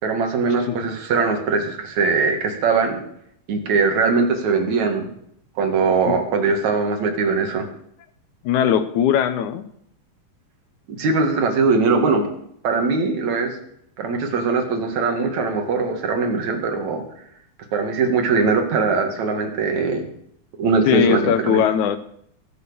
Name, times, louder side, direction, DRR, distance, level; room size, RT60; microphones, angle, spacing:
voice 1, 0.0-3.0 3.5-5.1 5.6-7.7 10.9-12.3 12.6-13.5 14.0-17.0 17.7-20.1 20.6-21.6, right 4 dB, 55° right, 4 dB, 3.1 m, -21 dB
voice 2, 8.4-9.7 20.9-22.0, left 9 dB, 75° left, 11 dB, 2.0 m, -19 dB
20.0 x 7.0 x 7.0 m, 0.69 s
omnidirectional pair, 4.0 m